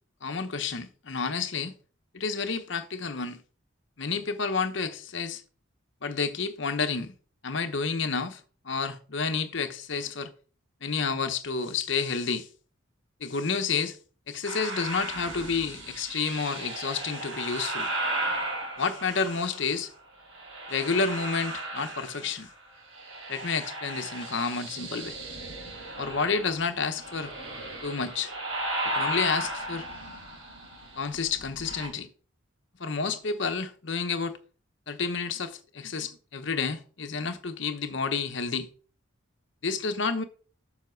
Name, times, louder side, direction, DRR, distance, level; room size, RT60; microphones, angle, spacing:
voice 1, 0.2-1.7 2.1-3.4 4.0-5.4 6.0-7.1 7.4-8.4 8.6-10.3 10.8-12.5 13.2-14.0 14.3-17.9 18.8-19.9 20.7-22.5 23.3-25.2 26.0-27.3 27.8-28.3 28.8-29.9 31.0-32.1 32.8-34.4 34.9-38.7 39.6-40.2, left 5 dB, 60° left, 0.9 m, -30 dB
sound 1, 14.4-19.8 20.3-22.5 22.8-31.9, right 1 dB, 85° right, 3.8 m, -35 dB
7.4 x 5.8 x 4.5 m
head